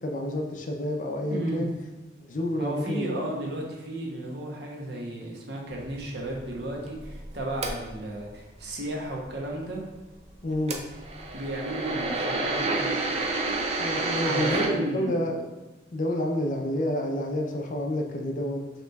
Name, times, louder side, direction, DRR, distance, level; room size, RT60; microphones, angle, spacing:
voice 1, 0.0-1.7 2.3-3.1 10.4-10.8 13.8-15.4 15.9-18.6, left 1 dB, 45° left, 2 dB, 0.5 m, -29 dB
voice 2, 1.3-1.7 2.6-9.8 11.3-12.9 13.9-15.2, right 1 dB, 60° right, -1 dB, 0.8 m, -34 dB
sound 1, 5.7-8.2 10.5-14.7, right 2 dB, 35° right, 0.4 m, -29 dB
5.6 x 2.9 x 2.3 m, 1.1 s
head